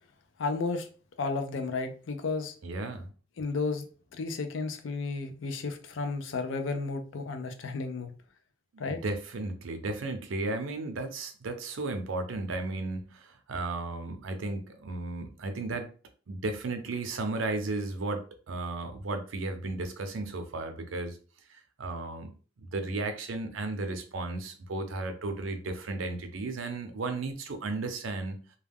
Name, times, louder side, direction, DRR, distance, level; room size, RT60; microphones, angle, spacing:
voice 1, 0.4-0.9 1.2-2.5 3.4-3.9 4.1-8.1 8.8-9.0, left 4 dB, 80° left, 0.5 m, -32 dB
voice 2, 2.6-3.1 8.8-15.9 16.3-21.2 21.5-22.3 22.6-28.4, right 2 dB, 90° right, 0.5 m, -34 dB
2.2 x 2.2 x 3.4 m
head